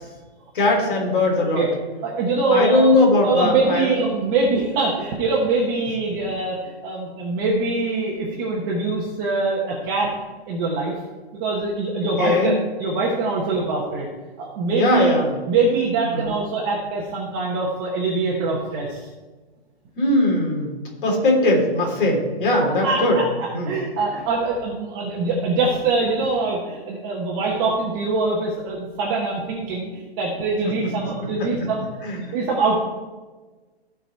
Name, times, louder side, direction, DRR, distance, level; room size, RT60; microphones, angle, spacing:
voice 1, 0.5-1.7 2.5-3.9 12.2-12.6 14.7-15.3 16.1-16.3 20.0-20.7 21.0-23.2 23.5-23.7 32.0-32.4, left 2 dB, 55° left, 0 dB, 3.4 m, -19 dB
voice 2, 2.0-2.9 3.2-10.1 10.5-10.9 11.3-14.1 14.4-19.1 22.6-31.8 32.2-32.8, right 3 dB, 20° right, -3 dB, 1.0 m, -23 dB
15.0 x 5.0 x 4.5 m, 1.3 s
hypercardioid pair, 160°, 32 cm